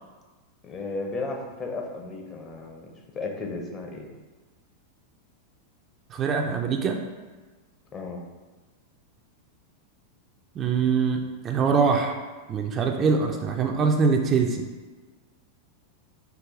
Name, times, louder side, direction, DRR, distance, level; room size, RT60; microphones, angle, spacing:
voice 1, 0.6-2.9 3.1-4.1 7.9-8.2, left 3 dB, 25° left, 1 dB, 0.6 m, -34 dB
voice 2, 6.1-7.0 10.6-11.2 11.4-12.1 12.5-14.6, right 5 dB, 30° right, 3 dB, 0.3 m, -23 dB
4.7 x 2.3 x 3.6 m, 1.3 s
figure-of-eight pair, 90°, 0 cm